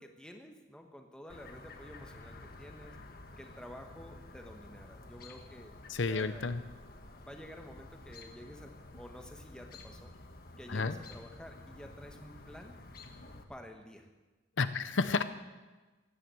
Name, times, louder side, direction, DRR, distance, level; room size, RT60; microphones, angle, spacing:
voice 1, 0.0-3.0 3.4-5.8 6.0-6.7 7.2-10.1 10.6-12.8 13.5-14.1, equal, 5° left, 3 dB, 1.3 m, -50 dB
Chirp tweet, 1.3-13.4, left 2 dB, 45° left, 1.3 m, -51 dB
voice 2, 5.9-6.6 10.7-10.9 14.6-15.2, left 4 dB, 70° left, 11 dB, 0.7 m, -31 dB
15.5 x 11.0 x 7.7 m, 1.2 s
head